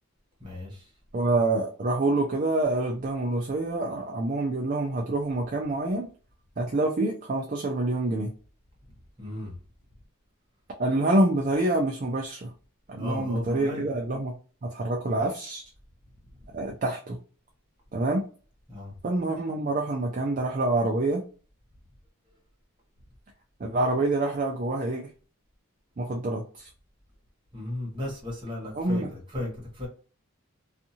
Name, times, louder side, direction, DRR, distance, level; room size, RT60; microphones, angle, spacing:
voice 1, 0.4-0.9 9.2-9.6 13.0-13.9 18.7-18.9 27.5-29.9, left 1 dB, 20° right, 1.2 m, -35 dB
voice 2, 1.1-6.1 6.6-8.3 10.8-12.5 12.9-14.3 14.6-15.6 16.5-17.2 17.9-18.2 19.0-21.2 23.6-25.1 26.0-26.7 28.7-29.1, right 2 dB, 40° right, 0.4 m, -26 dB
2.6 x 2.5 x 2.7 m
head